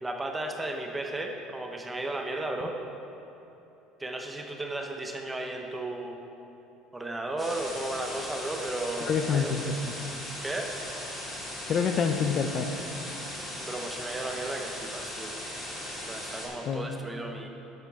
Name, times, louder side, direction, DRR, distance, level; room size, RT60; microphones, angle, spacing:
voice 1, 0.0-2.8 4.0-6.2 6.9-9.6 10.4-10.7 13.6-15.4 16.1-17.5, right 2 dB, 10° right, 3 dB, 0.6 m, -34 dB
sound 1, 7.4-16.5, left 1 dB, 10° left, 2.0 m, -38 dB
voice 2, 9.1-9.9 11.7-12.7 16.7-16.9, left 6 dB, 30° left, 6 dB, 0.4 m, -27 dB
11.0 x 10.0 x 3.5 m, 2.9 s
cardioid pair, 170°, 0 cm